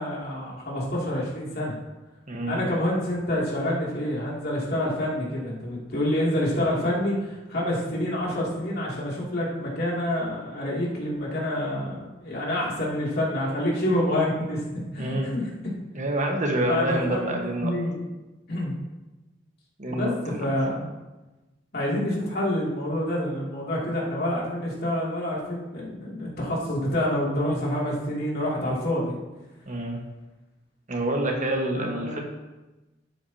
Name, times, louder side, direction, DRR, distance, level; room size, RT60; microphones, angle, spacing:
voice 1, 0.0-1.8 2.5-14.6 14.9-15.5 16.6-18.0 18.5-18.7 19.9-20.1 20.4-20.9 21.7-29.2 31.7-32.2, left 1 dB, 60° left, -5 dB, 2.7 m, -27 dB
voice 2, 2.3-2.6 15.0-15.3 15.9-17.7 19.8-20.4 29.7-30.0 30.9-32.2, right 1 dB, 40° right, 1 dB, 1.4 m, -27 dB
12.0 x 8.6 x 2.9 m, 1.1 s
head